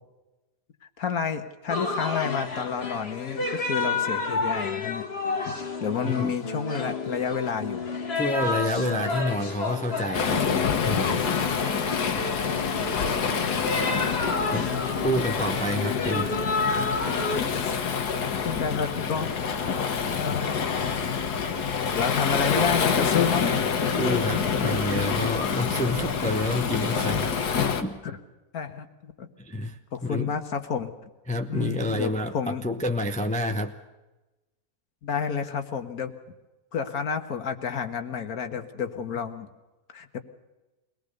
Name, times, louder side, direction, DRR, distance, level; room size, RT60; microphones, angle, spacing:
voice 1, 1.0-5.1 5.5-7.9 11.5-12.4 14.6-15.0 16.7-17.0 17.3-17.8 18.4-19.3 19.8-20.7 22.0-23.5 23.8-24.2 24.6-25.1 28.0-28.2 28.5-29.3 29.9-30.9 31.5-32.6 35.0-36.2 36.7-39.5 39.9-40.2, left 6 dB, 70° left, 8 dB, 2.0 m, -30 dB
sound 1, 1.7-17.4, left 4 dB, 40° left, 1.8 m, -30 dB
voice 2, 8.1-10.4 10.8-11.3 14.5-16.4 23.9-28.0 29.4-30.3 31.3-33.8, left 1 dB, 5° left, 6 dB, 0.8 m, -29 dB
Waves surf, 10.1-27.8, left 6 dB, 85° left, 1.9 m, -27 dB
23.0 x 18.5 x 6.7 m, 1.1 s
omnidirectional pair, 1.6 m